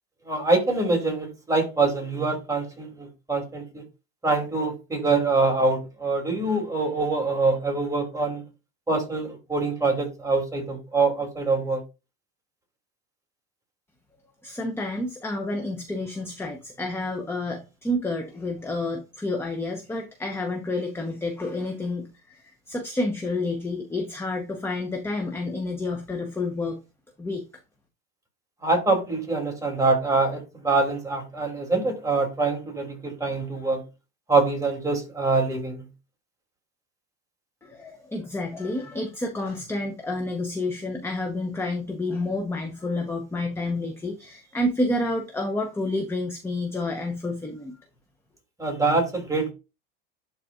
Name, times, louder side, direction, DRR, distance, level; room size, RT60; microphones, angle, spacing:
voice 1, 0.3-3.8 4.2-8.4 8.9-11.8 28.6-33.8 34.3-35.8 48.6-49.5, right 3 dB, 10° right, 3.0 m, -24 dB
voice 2, 14.4-26.8 27.2-27.4 37.6-47.8, left 2 dB, 10° left, 1.0 m, -29 dB
11.5 x 4.1 x 2.5 m
supercardioid pair, 130°, 30 cm